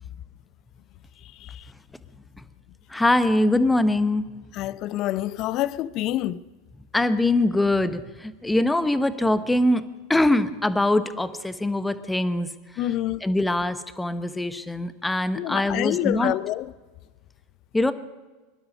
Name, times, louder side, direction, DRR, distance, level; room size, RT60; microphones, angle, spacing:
voice 1, 2.9-4.3 6.9-12.9 13.2-16.3 17.7-17.9, left 1 dB, 5° left, 1.0 m, -23 dB
voice 2, 4.6-6.4 12.8-13.2 15.4-16.7, left 14 dB, 45° left, 0.5 m, -27 dB
23.0 x 12.0 x 5.4 m
hypercardioid pair, 90°, 0 cm